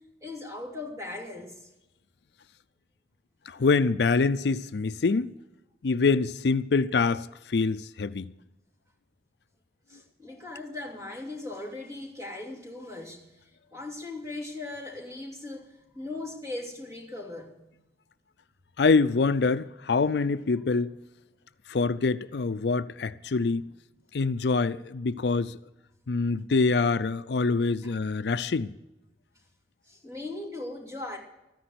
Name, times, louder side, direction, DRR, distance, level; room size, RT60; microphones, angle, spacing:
voice 1, 0.2-1.7 3.6-3.7 9.9-13.2 13.7-17.6 27.8-27.9 29.9-31.2, left 2 dB, 20° right, 2.9 m, -39 dB
voice 2, 3.5-5.3 5.8-8.3 18.8-20.9 21.7-23.6 24.1-25.6 26.1-28.7, left 4 dB, 75° left, 0.5 m, -25 dB
14.0 x 10.0 x 7.9 m
head